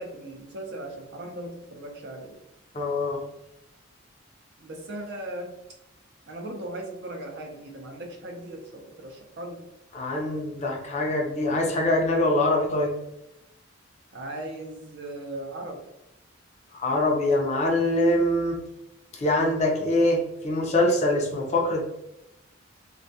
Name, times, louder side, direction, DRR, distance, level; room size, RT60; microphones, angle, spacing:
voice 1, 0.0-2.4 4.6-5.5 6.3-9.6 14.1-15.8, right 1 dB, 55° right, 2 dB, 0.5 m, -38 dB
voice 2, 2.7-3.2 9.9-12.9 16.7-18.6 19.1-21.8, left 1 dB, 35° left, 0 dB, 0.5 m, -24 dB
2.3 x 2.1 x 2.6 m, 0.88 s
head